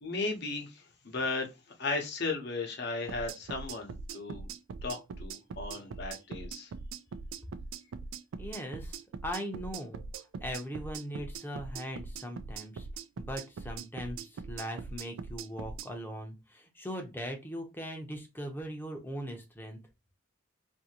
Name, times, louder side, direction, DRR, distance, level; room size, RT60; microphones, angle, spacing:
voice 1, 0.0-1.5 1.8-4.5 4.8-6.7, left 3 dB, 55° left, 0.9 m, -35 dB
sound 1, 3.1-15.9, right 4 dB, 80° right, 0.3 m, -41 dB
voice 2, 8.4-12.9 13.2-19.8, equal, 10° left, 0.6 m, -40 dB
2.7 x 2.6 x 2.8 m
head